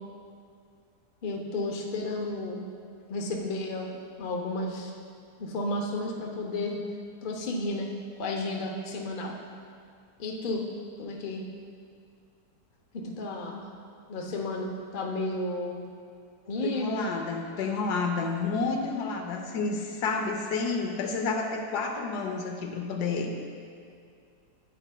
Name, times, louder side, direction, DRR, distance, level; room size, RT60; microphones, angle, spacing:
voice 1, 1.2-2.6 3.1-4.9 5.4-6.8 7.2-7.9 8.2-9.3 10.2-10.6 11.0-11.4 12.9-13.7 14.1-15.8 16.5-17.1, left 2 dB, 45° left, 0 dB, 0.7 m, -32 dB
voice 2, 16.6-23.3, left 4 dB, 75° left, 3 dB, 1.2 m, -30 dB
9.8 x 8.5 x 2.3 m, 2.3 s
omnidirectional pair, 1.8 m